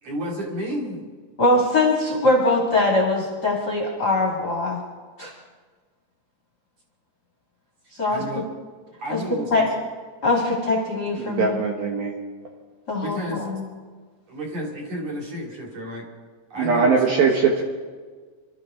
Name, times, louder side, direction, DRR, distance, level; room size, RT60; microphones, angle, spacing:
voice 1, 0.0-1.0 8.1-8.5 9.0-9.7 13.0-13.5 14.3-16.1 16.5-17.2, equal, 40° right, -3 dB, 3.5 m, -31 dB
voice 2, 1.4-4.8 5.2-5.3 7.9-8.2 9.1-9.2 9.5-9.6 10.2-11.6 12.9-13.6, left 2 dB, 40° left, -1 dB, 1.6 m, -22 dB
voice 3, 11.2-12.2 16.6-17.6, right 5 dB, 65° right, 0 dB, 2.6 m, -21 dB
26.0 x 13.5 x 3.8 m, 1.5 s
omnidirectional pair, 5.3 m